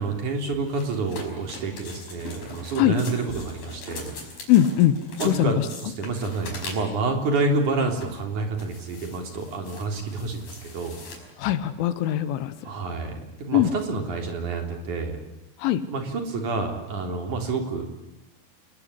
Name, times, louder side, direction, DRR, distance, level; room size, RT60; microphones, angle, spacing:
voice 1, 0.0-4.1 5.2-11.0 12.6-15.2 15.9-17.9, right 3 dB, 40° right, 3 dB, 4.6 m, -28 dB
sound 1, 0.7-7.1 7.7-8.2 8.6-11.2, left 3 dB, 50° left, 7.1 m, -41 dB
voice 2, 4.5-5.0 5.2-5.5 11.4-12.5 13.5-13.7 15.6-15.8, left 12 dB, 80° left, 13 dB, 3.6 m, -20 dB
28.5 x 20.5 x 9.9 m, 0.86 s
omnidirectional pair, 5.6 m